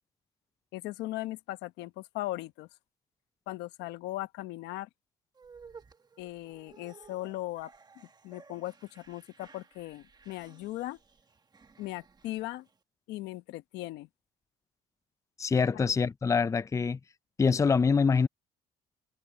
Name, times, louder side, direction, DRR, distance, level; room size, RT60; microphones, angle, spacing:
voice 1, 0.7-2.7 3.5-4.9 6.2-7.7 8.2-11.0 11.8-12.7 13.1-14.1 15.7-15.8, left 17 dB, 90° left, 1.1 m, -38 dB
sound 1, 5.3-12.8, right 5 dB, 25° right, 1.4 m, -56 dB
voice 2, 15.4-17.0 17.4-18.3, left 5 dB, 20° left, 0.5 m, -25 dB
cardioid pair, 110°, 17 cm